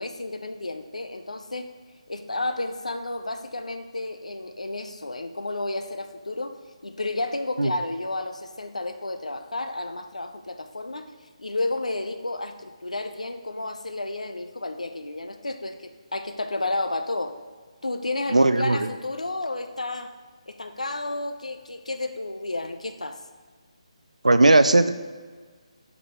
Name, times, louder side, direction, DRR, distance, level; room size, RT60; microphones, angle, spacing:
voice 1, 0.0-1.7 2.1-11.1 11.4-17.4 17.8-20.1 20.5-23.2, left 2 dB, 80° left, 8 dB, 0.5 m, -31 dB
voice 2, 18.3-18.8 24.2-24.9, right 2 dB, 85° right, 11 dB, 0.4 m, -17 dB
5.7 x 5.3 x 3.1 m, 1.5 s
figure-of-eight pair, 150°, 4 cm